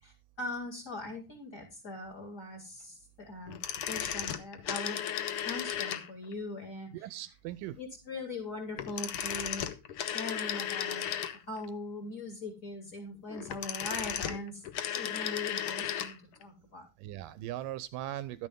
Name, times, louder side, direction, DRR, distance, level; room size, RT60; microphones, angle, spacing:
voice 1, 0.0-3.6 3.9-5.0 5.4-7.1 7.8-9.7 10.0-11.0 11.5-14.6 14.9-16.9, left 2 dB, 20° left, 3 dB, 5.7 m, -41 dB
sound 1, 3.5-6.3 8.7-11.7 13.3-16.2 16.4-16.5, left 10 dB, 70° left, 1.3 m, -35 dB
voice 2, 6.9-7.8 17.0-18.5, right 13 dB, 80° right, 16 dB, 2.3 m, -39 dB
12.5 x 9.8 x 3.7 m, 0.26 s
omnidirectional pair, 3.8 m